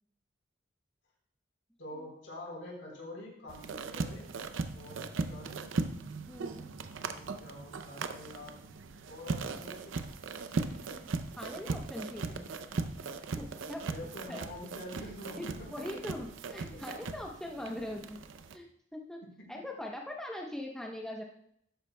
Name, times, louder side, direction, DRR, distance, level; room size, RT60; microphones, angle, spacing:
voice 1, 1.8-4.3 4.7-5.7 7.0-8.6 9.0-10.0 10.5-11.0 13.5-13.6 13.9-15.9 16.6-16.8 17.7-18.0 19.2-19.3, left 1 dB, 75° left, -2 dB, 4.0 m, -46 dB
sound 1, 3.5-18.6, right 4 dB, 80° right, 0.6 m, -38 dB
voice 2, 6.3-6.7 11.4-12.6 13.4-13.9 14.3-14.4 15.4-18.2 18.5-18.7 18.9-19.2 19.5-21.2, left 1 dB, 5° left, 0 dB, 0.8 m, -41 dB
12.5 x 9.6 x 2.2 m, 0.71 s
head